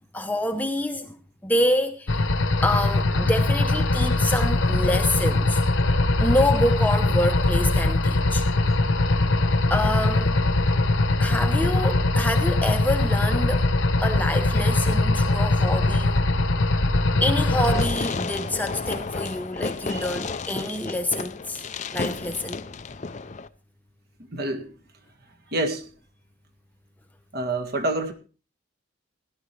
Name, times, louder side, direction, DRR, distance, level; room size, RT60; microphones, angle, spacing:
voice 1, 0.1-1.2 1.4-2.3 2.6-5.6 6.2-8.4 9.7-10.3 11.2-13.7 14.0-16.2 17.2-21.6 21.9-22.6, left 1 dB, 10° left, 0.8 m, -27 dB
sound 1, 2.1-17.9, left 2 dB, 65° left, 1.1 m, -21 dB
Fireworks, 17.5-23.5, left 4 dB, 35° left, 0.5 m, -32 dB
voice 2, 24.3-24.7 25.5-25.8 27.3-28.1, right 2 dB, 45° right, 1.7 m, -27 dB
16.5 x 12.0 x 3.2 m
head